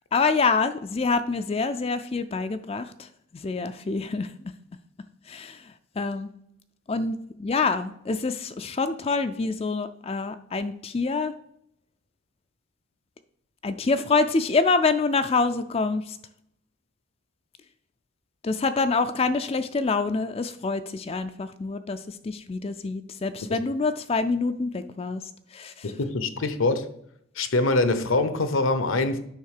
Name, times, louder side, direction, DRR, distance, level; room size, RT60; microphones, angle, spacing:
voice 1, 0.1-4.3 5.3-6.3 6.9-11.3 13.6-16.2 18.4-25.2 25.5-25.9, left 4 dB, 30° left, 0.3 m, -26 dB
voice 2, 25.8-26.9 27.4-29.2, left 2 dB, 70° left, 0.8 m, -24 dB
9.4 x 3.6 x 6.5 m
head